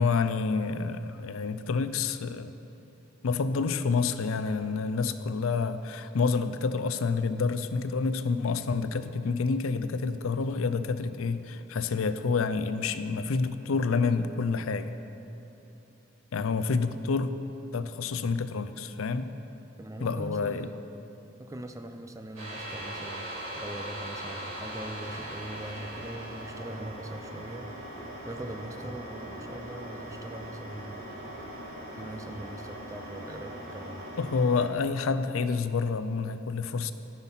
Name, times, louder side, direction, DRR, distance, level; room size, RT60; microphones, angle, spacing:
voice 1, 0.0-2.5 3.2-14.9 16.3-17.4 17.7-19.3 20.0-20.7 34.2-36.9, left 4 dB, 85° left, 12 dB, 0.5 m, -28 dB
voice 2, 19.8-20.8 21.4-31.0 31.9-34.0, right 1 dB, 15° right, 7 dB, 0.4 m, -41 dB
sound 1, 22.4-34.7, right 1 dB, 85° right, 2.6 m, -40 dB
14.0 x 5.7 x 5.7 m, 3.0 s
head